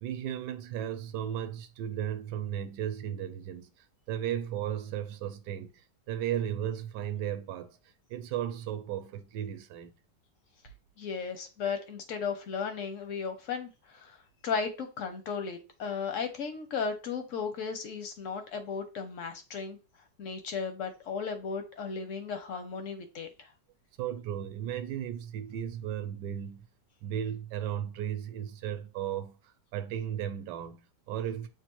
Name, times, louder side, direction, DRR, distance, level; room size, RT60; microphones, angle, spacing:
voice 1, 0.0-7.8 8.1-9.9 24.0-26.7 27.0-31.5, right 10 dB, 75° right, 1.1 m, -35 dB
voice 2, 11.0-14.2 14.4-19.8 20.2-23.5, left 5 dB, 65° left, 0.7 m, -35 dB
6.8 x 2.4 x 2.9 m
omnidirectional pair, 1.9 m